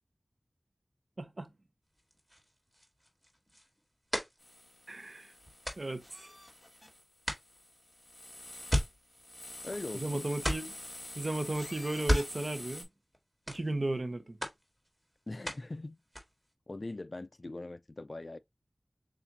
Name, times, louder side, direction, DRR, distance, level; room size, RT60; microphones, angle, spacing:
voice 1, 1.2-1.5 4.9-5.3 5.8-6.3 9.9-10.7 11.1-12.9 13.5-14.4, right 2 dB, 55° right, 0.7 m, -35 dB
sound 1, 1.9-6.8 7.2-10.0 10.3-10.9 11.9-13.2 13.4-14.1 14.4-16.5, equal, 10° right, 1.7 m, -37 dB
sound 2, 4.4-12.8, left 1 dB, 25° left, 1.9 m, -47 dB
voice 2, 9.6-10.3 15.3-16.0 16.7-18.4, left 2 dB, 55° left, 0.3 m, -41 dB
7.1 x 2.5 x 2.7 m
wide cardioid pair, 60°, 0 cm